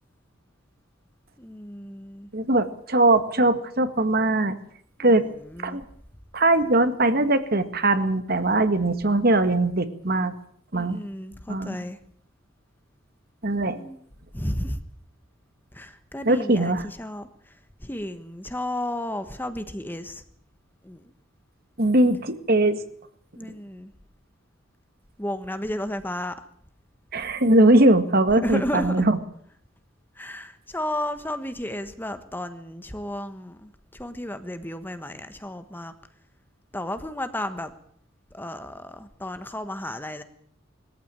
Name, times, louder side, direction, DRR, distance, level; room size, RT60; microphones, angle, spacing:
voice 1, 1.4-2.3 5.5-5.8 10.7-12.0 13.7-14.0 14.3-14.8 15.7-16.7 17.0-17.3 17.8-20.2 20.8-21.0 23.4-23.9 25.2-26.3 28.4-29.0 30.2-33.7 34.0-35.9 36.7-37.7 38.3-40.2, left 1 dB, 10° left, 10 dB, 1.3 m, -32 dB
voice 2, 2.3-4.6 5.0-5.3 5.6-5.8 6.3-10.3 10.7-11.0 11.5-11.8 13.4-13.8 16.2-16.9 21.8-22.8 27.1-29.2, right 2 dB, 50° right, 10 dB, 1.8 m, -20 dB
21.5 x 14.5 x 9.0 m, 0.64 s
head